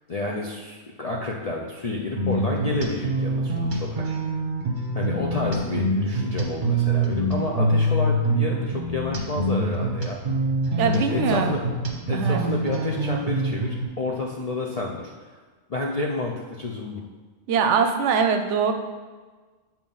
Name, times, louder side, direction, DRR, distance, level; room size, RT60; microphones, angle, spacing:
voice 1, 0.1-4.0 4.9-10.2 10.8-11.6 12.1-15.1 15.7-17.0, left 2 dB, 55° left, -2 dB, 0.4 m, -30 dB
sound 1, 2.2-13.9, right 1 dB, 45° right, 0.9 m, -25 dB
voice 2, 10.8-11.5 12.1-12.4 17.5-18.7, right 6 dB, 70° right, 6 dB, 0.8 m, -22 dB
7.0 x 2.9 x 5.4 m, 1.4 s
omnidirectional pair, 1.3 m